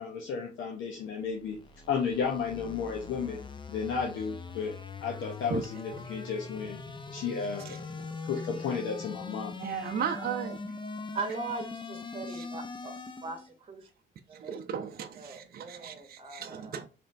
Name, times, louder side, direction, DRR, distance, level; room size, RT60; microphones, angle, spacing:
voice 1, 0.0-1.6 1.9-3.4 3.7-4.8 5.0-6.8 7.1-7.8 8.3-9.5, left 6 dB, 80° left, 0.7 m, -33 dB
sound 1, 1.3-13.5, left 4 dB, 25° left, 0.5 m, -42 dB
voice 2, 9.6-10.6 12.3-12.4 14.4-16.9, right 7 dB, 50° right, 0.5 m, -35 dB
voice 3, 11.1-12.9 13.2-13.9 14.3-14.6 15.1-16.7, right 4 dB, 30° right, 0.9 m, -39 dB
4.2 x 3.2 x 2.5 m
cardioid pair, 90°, 20 cm